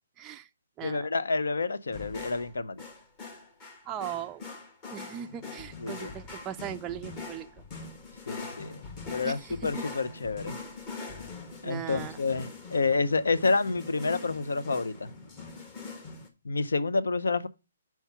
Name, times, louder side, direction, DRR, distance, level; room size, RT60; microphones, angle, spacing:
voice 1, 0.2-0.5 0.8-1.1 3.8-4.5 4.9-7.5 9.2-9.7 11.6-12.2, right 10 dB, 20° right, 0.3 m, -38 dB
voice 2, 0.8-2.8 5.8-6.1 8.3-10.6 11.6-15.1 16.4-17.5, left 3 dB, 85° left, 0.6 m, -29 dB
sound 1, 1.9-16.3, left 4 dB, 25° left, 1.2 m, -42 dB
5.8 x 4.6 x 5.6 m
hypercardioid pair, 150°, 0 cm